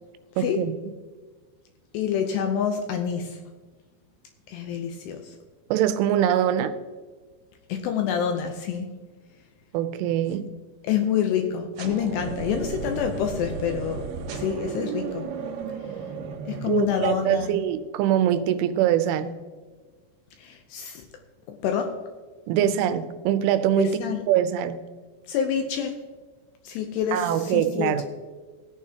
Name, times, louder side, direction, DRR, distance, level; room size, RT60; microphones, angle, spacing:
voice 1, 0.4-0.7 5.7-6.7 9.7-10.5 16.7-19.4 22.5-24.0 24.3-24.8 27.1-28.1, right 10 dB, 85° right, 11 dB, 3.2 m, -23 dB
voice 2, 1.9-3.4 4.5-5.4 7.7-8.9 10.8-14.1 14.3-15.3 16.5-17.6 20.4-21.1 21.5-22.0 23.8-24.3 25.3-26.0 26.6-27.9, left 8 dB, 80° left, 5 dB, 2.6 m, -27 dB
sound 1, 11.8-17.7, right 5 dB, 70° right, 2.5 m, -34 dB
17.5 x 9.8 x 2.9 m, 1.4 s
omnidirectional pair, 5.6 m